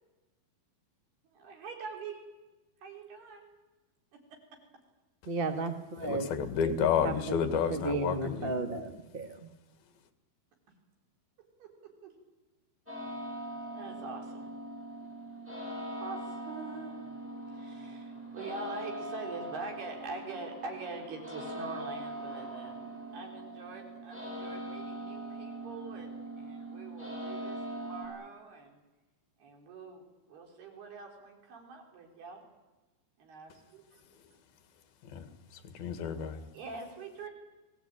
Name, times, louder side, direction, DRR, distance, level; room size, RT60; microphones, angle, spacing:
voice 1, 1.3-2.2 2.8-3.5 4.1-4.4 11.6-12.1 13.7-14.5 15.9-17.1 17.5-22.8 23.1-28.8 29.4-32.4 33.2-33.8 36.5-37.3, right 4 dB, 85° right, 2 dB, 5.9 m, -44 dB
voice 2, 5.2-6.3 6.6-7.4 7.7-9.5, right 2 dB, 50° right, 6 dB, 0.6 m, -34 dB
voice 3, 6.0-8.6 35.0-36.5, left 7 dB, 75° left, 9 dB, 3.6 m, -31 dB
sound 1, 12.9-28.1, right 1 dB, 5° right, 7.7 m, -41 dB
28.5 x 18.5 x 9.0 m, 1.1 s
omnidirectional pair, 4.4 m